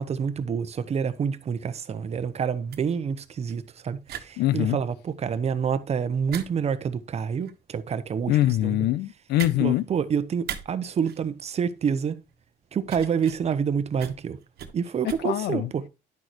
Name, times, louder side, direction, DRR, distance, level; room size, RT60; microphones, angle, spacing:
voice 1, 0.0-8.9 9.6-12.2 12.7-14.4 14.7-15.9, right 7 dB, 40° right, 0.9 m, -28 dB
sound 1, 1.9-15.1, right 10 dB, 70° right, 1.3 m, -43 dB
voice 2, 4.4-4.8 8.3-9.8 15.2-15.7, left 15 dB, 75° left, 0.6 m, -23 dB
10.5 x 6.4 x 3.0 m
cardioid pair, 110°, 17 cm